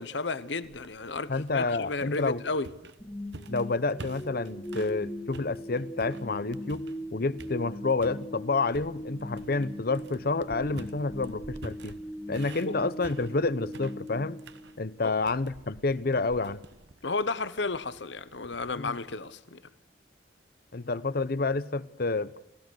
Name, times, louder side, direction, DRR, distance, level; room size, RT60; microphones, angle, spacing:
voice 1, 0.0-2.7 12.7-12.8 15.0-15.1 17.0-19.6, left 3 dB, 70° left, 1.1 m, -33 dB
sound 1, 0.6-5.0 5.3-7.1 7.4-8.2 8.7-19.2, right 3 dB, 65° right, 1.1 m, -49 dB
voice 2, 1.3-2.4 3.5-12.0 12.3-14.4 14.8-16.6 18.8-18.9 20.7-22.4, left 3 dB, 55° left, 0.8 m, -29 dB
sound 2, 3.0-15.1, equal, 15° left, 1.9 m, -40 dB
29.0 x 15.5 x 6.4 m
head